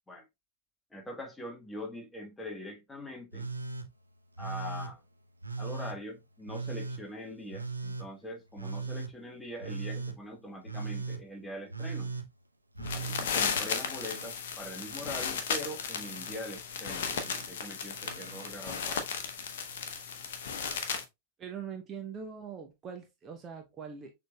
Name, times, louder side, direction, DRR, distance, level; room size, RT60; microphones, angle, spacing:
voice 1, 0.9-3.5 4.4-5.0 5.6-12.1 12.9-19.1, left 1 dB, 10° left, 1.2 m, -43 dB
Telephone, 3.3-3.9 4.4-4.9 5.4-6.0 6.5-7.0 7.5-8.1 8.6-9.1 9.6-10.2 10.6-11.2 11.7-12.3 12.7-14.3 14.6-15.4 15.9-16.4 17.0-17.5 18.0-18.5 19.7-19.8, right 4 dB, 85° right, 0.6 m, -39 dB
sound 1, 12.8-21.0, left 6 dB, 60° left, 0.8 m, -35 dB
voice 2, 21.4-24.1, right 7 dB, 25° right, 0.7 m, -42 dB
6.4 x 3.3 x 2.2 m
figure-of-eight pair, 90°, 0 cm